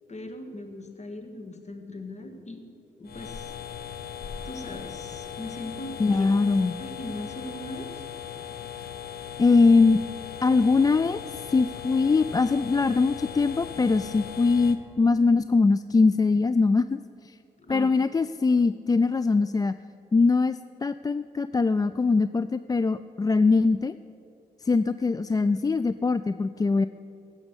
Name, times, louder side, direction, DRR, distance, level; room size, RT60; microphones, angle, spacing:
voice 1, 0.1-2.7 3.0-3.5 4.4-6.3 6.8-8.1 17.6-18.2, left 1 dB, 40° left, 6 dB, 1.9 m, -39 dB
sound 1, 3.0-14.8, left 9 dB, 55° left, 1.1 m, -39 dB
voice 2, 6.0-6.8 9.4-10.0 10.4-17.4 17.7-19.7 20.1-23.9 24.6-26.9, left 4 dB, 20° left, 14 dB, 0.4 m, -22 dB
15.5 x 6.3 x 8.2 m, 2.8 s
hypercardioid pair, 45°, 19 cm